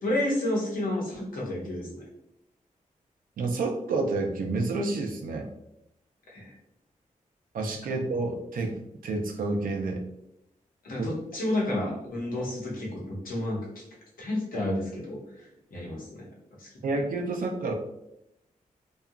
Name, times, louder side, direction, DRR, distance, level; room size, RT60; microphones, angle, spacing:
voice 1, 0.0-2.0 6.3-6.5 10.8-13.8 14.2-16.3 16.6-16.7, left 1 dB, 90° left, -4 dB, 0.8 m, -31 dB
voice 2, 3.4-5.5 7.5-8.8 9.0-10.0 11.0-11.1 16.8-17.7, right 3 dB, 85° right, 3 dB, 0.4 m, -29 dB
2.8 x 2.3 x 2.3 m, 0.84 s
cardioid pair, 60°, 14 cm